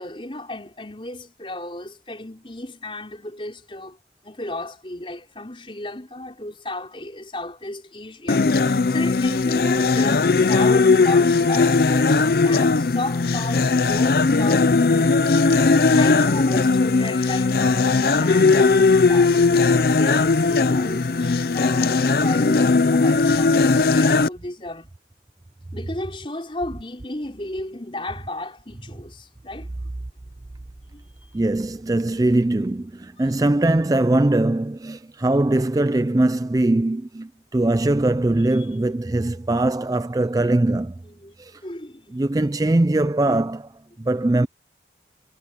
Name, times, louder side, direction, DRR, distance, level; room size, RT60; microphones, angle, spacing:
voice 1, 0.0-4.0 4.2-24.9 25.7-29.7 30.8-31.4 32.0-32.1 33.2-33.3 35.2-35.3 38.5-38.7 41.2-41.3 41.6-42.1 44.0-44.1, left 1 dB, 30° left, 4.9 m, -34 dB
sound 1, 8.3-24.3, left 3 dB, 55° left, 0.5 m, -18 dB
voice 2, 31.3-40.9 41.4-41.6 42.1-43.7 44.0-44.5, right 2 dB, 20° right, 0.4 m, -21 dB
head